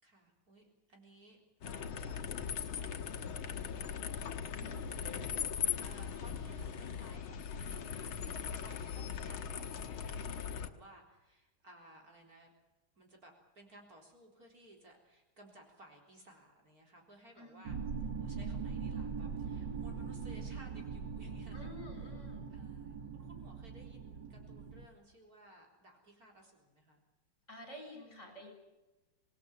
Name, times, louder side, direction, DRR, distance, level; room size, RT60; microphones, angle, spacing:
voice 1, 0.0-12.5 13.0-17.8 18.2-22.0 22.5-27.0, right 1 dB, 45° right, 1 dB, 4.4 m, -59 dB
sound 1, 1.6-10.7, left 8 dB, 80° left, 2.2 m, -39 dB
voice 2, 4.5-5.0 17.4-17.9 21.5-22.5 27.5-28.5, left 1 dB, 35° left, 4 dB, 7.3 m, -50 dB
sound 2, 17.6-24.9, right 5 dB, 60° right, 2.0 m, -41 dB
26.0 x 19.5 x 7.2 m, 1.1 s
omnidirectional pair, 2.2 m